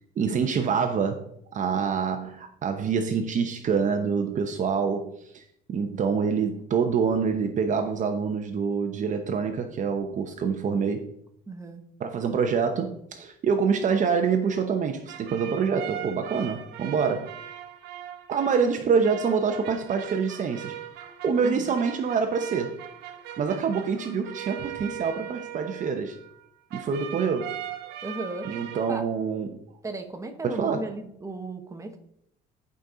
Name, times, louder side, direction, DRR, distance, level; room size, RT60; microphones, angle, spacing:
voice 1, 0.2-11.1 12.0-17.3 18.3-22.8 23.4-26.2 26.7-27.6 28.5-29.6 30.4-30.9, right 6 dB, 50° right, 0.9 m, -26 dB
voice 2, 11.5-11.8 21.4-21.8 28.0-28.5 28.9-29.1 29.8-32.0, right 2 dB, 20° right, 1.2 m, -35 dB
sound 1, 14.4-26.5 26.7-29.0, right 11 dB, 90° right, 1.0 m, -40 dB
11.0 x 5.3 x 3.9 m
cardioid pair, 110°, 17 cm